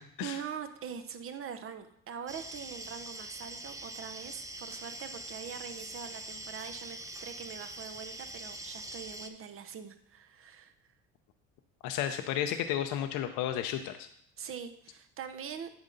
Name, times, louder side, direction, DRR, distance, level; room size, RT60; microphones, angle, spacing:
voice 1, 0.2-10.7 14.4-15.7, right 7 dB, 45° right, 9 dB, 0.8 m, -43 dB
sound 1, 2.3-9.3, right 2 dB, 10° right, 0.6 m, -43 dB
voice 2, 11.8-14.1, left 10 dB, 75° left, 7 dB, 0.6 m, -32 dB
8.9 x 5.2 x 3.9 m, 0.70 s
cardioid pair, 95°, 32 cm